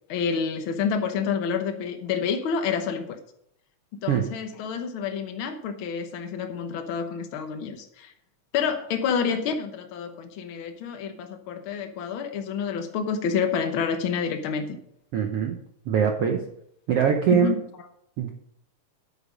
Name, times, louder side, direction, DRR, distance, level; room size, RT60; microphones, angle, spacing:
voice 1, 0.1-3.2 3.9-8.1 8.5-14.8 17.4-17.6, left 6 dB, 85° left, 6 dB, 1.1 m, -28 dB
voice 2, 15.1-15.6 15.8-16.4 16.9-17.6 18.2-18.3, right 8 dB, 75° right, 3 dB, 1.4 m, -22 dB
10.5 x 8.4 x 5.1 m, 0.71 s
omnidirectional pair, 3.8 m